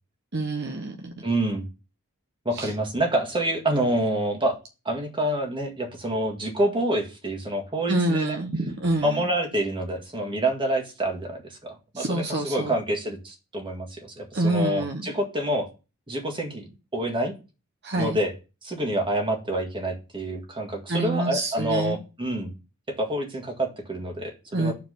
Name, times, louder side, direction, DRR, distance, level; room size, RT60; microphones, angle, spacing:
voice 1, 0.3-1.1 2.6-2.7 7.9-9.3 11.9-12.7 14.3-15.1 17.8-18.2 20.9-22.0 24.5-24.7, right 2 dB, 55° right, 4 dB, 1.1 m, -27 dB
voice 2, 1.2-1.6 2.5-4.6 4.9-8.4 9.0-15.7 16.1-17.3 18.0-18.3 18.6-22.5 23.0-24.7, right 1 dB, 25° right, 3 dB, 1.8 m, -27 dB
5.9 x 4.6 x 6.5 m, 0.31 s
head